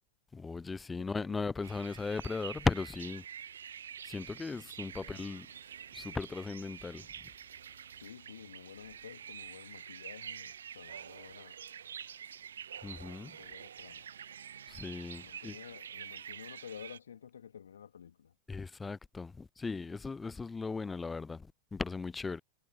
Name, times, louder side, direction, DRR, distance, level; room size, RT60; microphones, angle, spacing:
voice 1, 0.3-3.2 4.0-5.5 5.9-7.1 12.8-13.4 14.7-15.6 18.5-22.4, left 4 dB, 15° left, 0.7 m, -37 dB
sound 1, 1.6-17.0, right 8 dB, 65° right, 0.5 m, -47 dB
voice 2, 8.0-11.6 13.2-14.1 15.2-18.3, left 8 dB, 65° left, 2.8 m, -51 dB
figure-of-eight pair, 90°, 0 cm